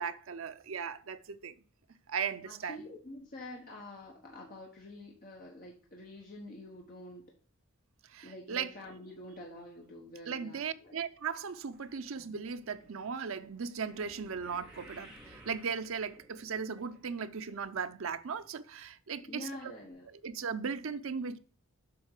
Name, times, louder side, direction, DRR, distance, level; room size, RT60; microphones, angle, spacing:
voice 1, 0.0-1.6 2.1-2.8 8.1-8.7 10.3-19.8 20.1-21.4, right 6 dB, 70° right, 0.6 m, -37 dB
voice 2, 2.4-7.2 8.2-11.0 19.2-20.1, left 1 dB, 40° left, 1.2 m, -47 dB
sound 1, 11.7-18.1 18.4-18.9 19.4-19.5 19.8-19.9, right 1 dB, 5° right, 1.9 m, -57 dB
7.7 x 3.7 x 6.5 m
head